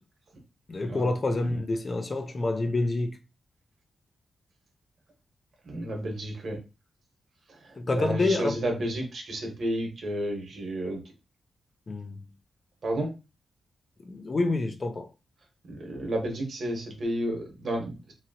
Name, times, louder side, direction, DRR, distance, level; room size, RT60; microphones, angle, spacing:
voice 1, 0.7-3.2 7.8-8.6 11.9-12.3 14.1-15.1, left 2 dB, 35° left, 0.4 m, -27 dB
voice 2, 5.6-6.6 7.5-11.0 12.8-13.1 15.7-18.1, right 1 dB, 55° right, 1.1 m, -32 dB
2.8 x 2.8 x 2.7 m
wide cardioid pair, 130°, 0 cm